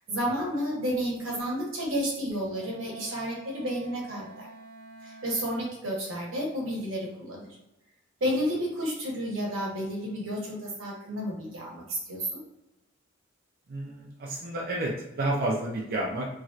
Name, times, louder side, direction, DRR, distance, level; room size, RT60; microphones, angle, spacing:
voice 1, 0.1-4.5 5.0-7.5 8.2-12.4, equal, 85° right, -3 dB, 1.0 m, -31 dB
Wind instrument woodwind instrument, 2.4-5.9, right 3 dB, 75° left, 1.1 m, -48 dB
voice 2, 13.7-16.3, right 1 dB, 50° right, -3 dB, 0.4 m, -30 dB
3.0 x 2.7 x 2.4 m, 0.90 s
head